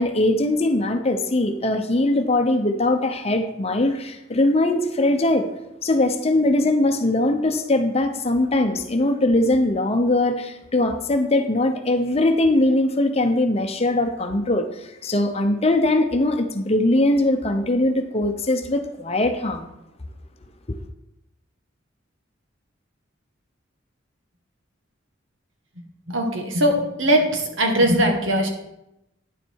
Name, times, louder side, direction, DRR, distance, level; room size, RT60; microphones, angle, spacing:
voice 1, 0.0-5.5 5.8-19.7, left 2 dB, 30° left, 6 dB, 0.8 m, -21 dB
voice 2, 26.1-28.5, right 1 dB, 80° right, 3 dB, 1.8 m, -20 dB
10.0 x 7.4 x 4.7 m, 0.87 s
head